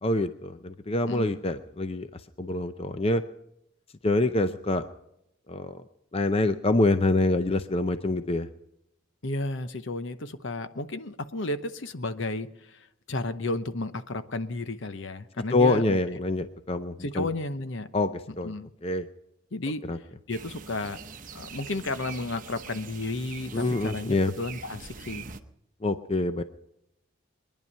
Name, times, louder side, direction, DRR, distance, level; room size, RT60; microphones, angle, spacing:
voice 1, 0.0-2.1 2.4-3.2 4.0-4.8 5.5-5.8 6.1-8.5 15.5-17.3 17.9-18.5 18.8-19.1 19.9-20.0 23.5-24.3 25.8-26.4, left 2 dB, 30° left, 10 dB, 0.5 m, -25 dB
voice 2, 1.1-1.4 9.2-16.0 17.0-17.9 18.3-18.7 19.5-19.8 20.3-21.0 21.3-25.3, left 2 dB, 65° left, 11 dB, 0.9 m, -33 dB
sound 1, 20.3-25.4, right 5 dB, 40° right, 0.9 m, -43 dB
23.5 x 10.5 x 5.5 m, 0.83 s
head